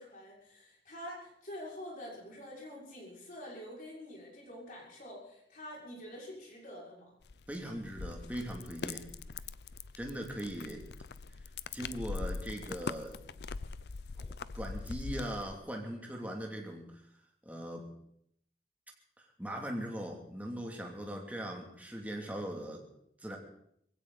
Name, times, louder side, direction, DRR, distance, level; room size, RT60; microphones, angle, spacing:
voice 1, 0.0-7.1, equal, 50° left, -3 dB, 5.8 m, -46 dB
sound 1, 7.2-15.6, left 4 dB, 70° left, 0.6 m, -42 dB
voice 2, 7.5-9.1 10.0-10.8 11.7-13.2 14.2-16.9 17.5-17.9 19.4-22.8 23.2-23.4, equal, 10° right, 0 dB, 2.7 m, -40 dB
21.5 x 16.0 x 4.1 m, 0.72 s
head